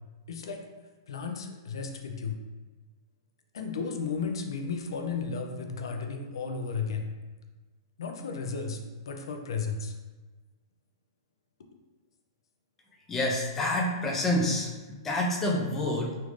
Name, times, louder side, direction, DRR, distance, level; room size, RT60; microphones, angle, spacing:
voice 1, 0.3-0.6 1.1-2.4 3.5-7.1 8.0-8.8 9.0-9.9, left 5 dB, 85° left, 4 dB, 0.5 m, -34 dB
voice 2, 13.1-16.2, left 1 dB, 10° left, -1 dB, 0.3 m, -28 dB
3.2 x 2.5 x 3.1 m, 1.3 s
hypercardioid pair, 175°, 2 cm